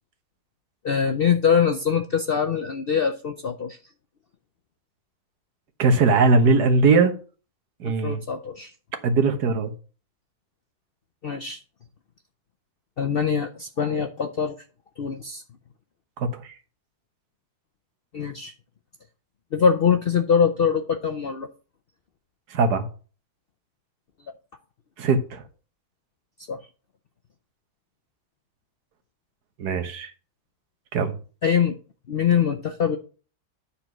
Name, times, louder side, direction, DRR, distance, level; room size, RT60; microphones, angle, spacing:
voice 1, 0.8-3.8 7.8-8.7 11.2-11.6 13.0-14.6 15.0-15.4 18.1-18.5 19.5-21.5 26.5-26.6 31.4-31.8 32.1-33.0, left 7 dB, 60° left, 0.6 m, -23 dB
voice 2, 5.8-7.1 7.8-8.2 9.0-9.7 16.2-16.5 22.5-22.9 25.0-25.4 29.6-30.1 30.9-31.1, right 4 dB, 80° right, 1.6 m, -20 dB
9.8 x 4.3 x 5.9 m
omnidirectional pair, 1.7 m